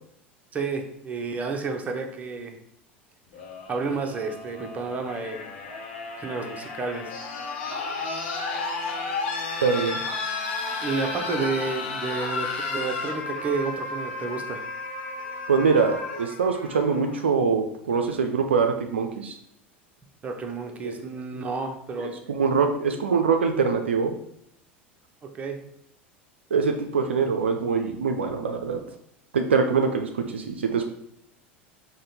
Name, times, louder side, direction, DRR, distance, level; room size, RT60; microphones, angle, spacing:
voice 1, 0.5-2.6 3.7-5.5 6.2-7.2 10.8-14.6 20.2-22.1 25.2-25.6, right 4 dB, 20° right, 4 dB, 0.6 m, -31 dB
sound 1, 3.3-17.3 18.5-18.6, left 3 dB, 55° left, 0.8 m, -33 dB
voice 2, 9.6-10.0 15.5-19.4 20.8-21.0 22.0-24.1 26.5-28.8 29.3-30.8, right 5 dB, 70° right, 5 dB, 0.4 m, -23 dB
4.9 x 2.2 x 4.0 m, 0.73 s
figure-of-eight pair, 75°, 6 cm